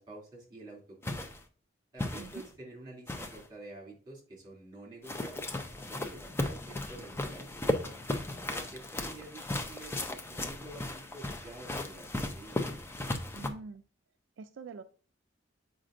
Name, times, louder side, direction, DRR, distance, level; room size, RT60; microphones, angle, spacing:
voice 1, 0.0-1.4 1.9-5.5 5.9-7.8 8.5-12.6, right 2 dB, 25° right, -3 dB, 2.6 m, -49 dB
sound 1, 1.0-1.4 2.0-2.5 3.1-3.5 5.0-13.5, left 1 dB, 10° left, 0.6 m, -36 dB
voice 2, 13.3-13.8 14.4-14.8, right 4 dB, 70° right, 9 dB, 0.4 m, -45 dB
7.4 x 5.0 x 2.5 m, 0.41 s
head